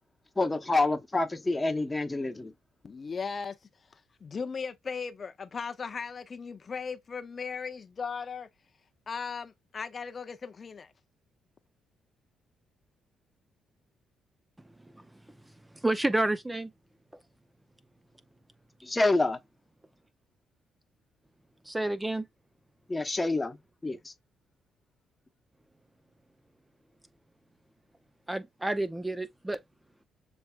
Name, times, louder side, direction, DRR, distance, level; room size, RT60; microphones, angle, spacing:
voice 1, 0.4-2.5 18.8-19.4 22.9-23.6 23.8-24.1, left 2 dB, 15° left, 0.9 m, -27 dB
voice 2, 2.8-3.5 4.2-8.5 9.1-10.9, left 5 dB, 40° left, 0.5 m, -37 dB
voice 3, 15.8-16.7 21.7-22.2 28.3-29.6, right 2 dB, 10° right, 0.5 m, -29 dB
6.9 x 3.3 x 2.3 m
cardioid pair, 90°, 0 cm